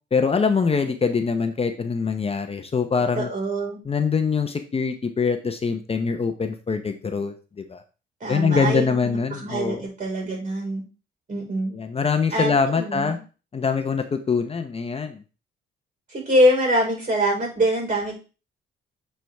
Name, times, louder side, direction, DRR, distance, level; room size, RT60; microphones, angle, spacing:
voice 1, 0.1-3.3 3.8-7.8 8.3-9.9 11.7-13.2 13.5-15.2, left 5 dB, 30° left, 7 dB, 0.8 m, -24 dB
voice 2, 3.1-3.8 8.2-10.8 11.3-11.7 12.3-13.2 16.1-18.2, equal, 40° right, 0 dB, 4.7 m, -24 dB
9.0 x 4.6 x 3.4 m, 0.33 s
cardioid pair, 90°, 20 cm